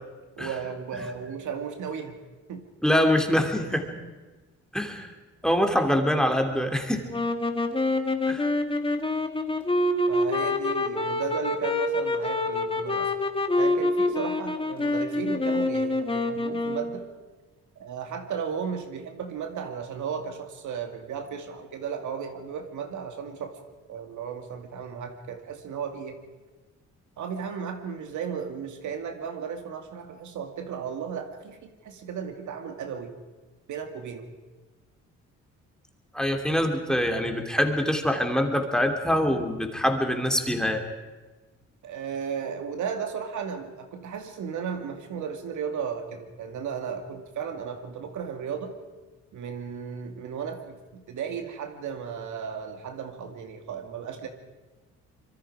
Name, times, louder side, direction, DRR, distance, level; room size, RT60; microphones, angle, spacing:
voice 1, 0.4-2.2 2.5-2.7 10.1-13.1 13.5-17.1 17.8-23.6 23.9-26.2 27.2-33.1 33.7-34.3 41.8-48.7 49.3-54.3, right 7 dB, 75° right, 5 dB, 2.4 m, -35 dB
voice 2, 2.8-3.9 4.7-5.1 5.4-7.1 8.3-8.4 36.1-40.8, equal, ahead, 4 dB, 2.9 m, -24 dB
sound 1, 7.1-17.1, left 2 dB, 15° left, 2.0 m, -26 dB
25.5 x 23.0 x 5.0 m, 1.2 s
cardioid pair, 90°, 30 cm